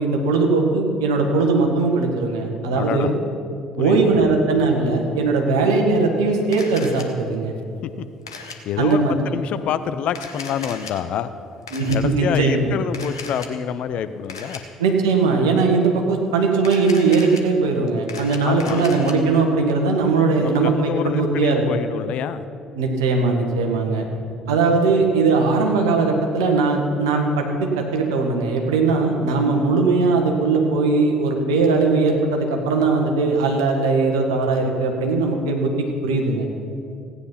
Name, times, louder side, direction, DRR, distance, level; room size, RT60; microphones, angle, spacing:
voice 1, 0.0-3.1 3.8-7.5 8.8-9.2 11.7-12.7 14.8-21.8 22.7-24.1 24.5-36.5, right 3 dB, 75° right, 2 dB, 1.7 m, -19 dB
voice 2, 2.7-3.1 3.8-4.3 7.8-8.1 8.6-11.3 11.9-14.6 18.4-18.8 20.4-22.4 24.4-24.6, left 9 dB, 55° left, 12 dB, 0.7 m, -27 dB
Camera, 6.5-7.0 8.3-8.6 10.1-10.9 11.7-12.0 12.9-13.5 14.3-14.6 16.6-17.4 17.9-19.1, left 4 dB, 85° left, 1.0 m, -36 dB
16.0 x 9.8 x 5.8 m, 2.5 s
figure-of-eight pair, 55°, 2 cm